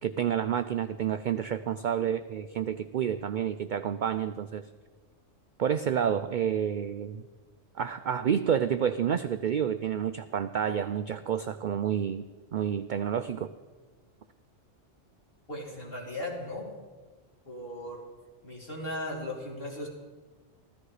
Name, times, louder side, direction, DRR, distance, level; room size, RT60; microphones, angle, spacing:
voice 1, 0.0-4.6 5.6-7.2 7.7-12.2 12.5-13.5, right 8 dB, 65° right, 10 dB, 0.5 m, -29 dB
voice 2, 15.5-16.7 17.4-18.0 18.4-19.9, left 1 dB, 50° left, -3 dB, 3.2 m, -37 dB
15.0 x 13.5 x 4.9 m, 1.3 s
omnidirectional pair, 1.3 m